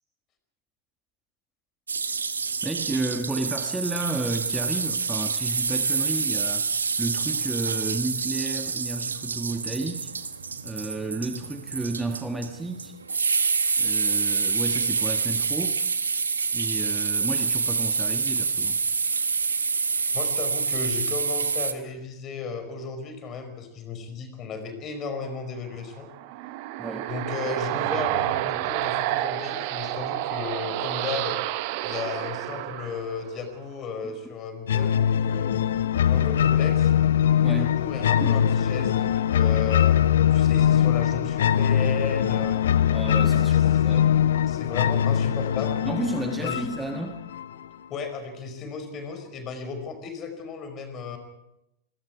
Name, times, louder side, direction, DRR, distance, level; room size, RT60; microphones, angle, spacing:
sound 1, 1.9-21.7, right 5 dB, 75° right, 1.3 m, -27 dB
voice 1, 2.6-10.1 10.6-12.9 13.8-15.8 16.5-18.8 26.8-27.1 37.4-37.7 38.2-38.4 42.9-44.2 45.8-47.2, right 2 dB, 10° right, 5 dB, 1.7 m, -32 dB
voice 2, 20.1-26.1 27.1-31.4 31.8-35.6 36.0-36.9 37.5-40.0 40.3-42.7 43.4-43.8 44.5-45.8 46.4-46.7 47.9-51.2, left 5 dB, 30° left, 7 dB, 5.0 m, -34 dB
sound 2, 25.9-33.5, right 16 dB, 45° right, 0.9 m, -29 dB
sound 3, 34.7-47.7, left 9 dB, 60° left, 0.9 m, -22 dB
27.0 x 22.0 x 4.8 m, 0.86 s
figure-of-eight pair, 90°, 0 cm